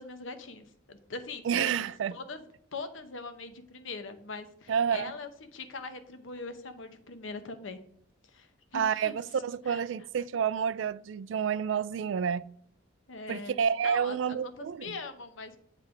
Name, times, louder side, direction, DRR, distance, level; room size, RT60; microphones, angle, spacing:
voice 1, 0.0-1.7 2.1-2.4 2.7-7.8 8.3-9.1 9.7-9.8 13.1-13.5 13.8-15.6, left 3 dB, 80° left, 0.9 m, -41 dB
voice 2, 1.4-2.2 4.7-5.1 8.7-12.4 13.3-15.0, right 7 dB, 70° right, 0.3 m, -29 dB
8.3 x 3.4 x 5.8 m
head